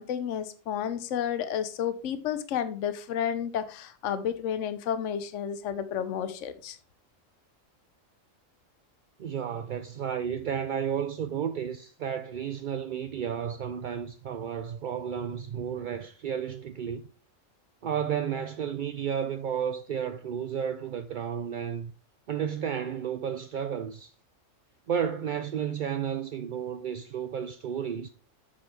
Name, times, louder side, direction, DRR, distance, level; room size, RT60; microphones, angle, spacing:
voice 1, 0.0-6.8, left 9 dB, 70° left, 1.0 m, -31 dB
voice 2, 9.2-17.0 17.8-21.9 22.3-24.1 24.9-28.1, right 8 dB, 60° right, 0.5 m, -32 dB
8.4 x 4.7 x 4.6 m
omnidirectional pair, 1.3 m